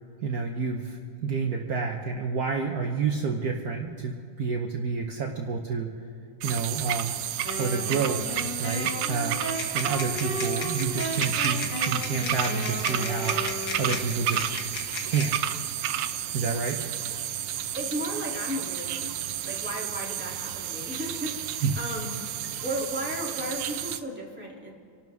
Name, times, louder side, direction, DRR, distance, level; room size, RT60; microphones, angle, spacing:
voice 1, 0.2-5.9 6.4-7.2 7.6-8.2 8.6-9.5 9.7-13.4 13.8-14.5 15.1-15.4 16.3-16.8 21.6-21.7, right 5 dB, 60° right, 1 dB, 1.5 m, -29 dB
sound 1, 6.4-24.0, right 10 dB, 85° right, 1.4 m, -31 dB
Wind instrument woodwind instrument, 7.4-14.3, equal, 80° left, 4.0 m, -35 dB
sound 2, 9.5-15.3, left 4 dB, 60° left, 1.9 m, -37 dB
voice 2, 17.7-19.1 19.4-22.2 22.6-24.7, equal, 5° right, -4 dB, 3.0 m, -34 dB
27.5 x 12.5 x 3.6 m, 2.5 s
omnidirectional pair, 2.0 m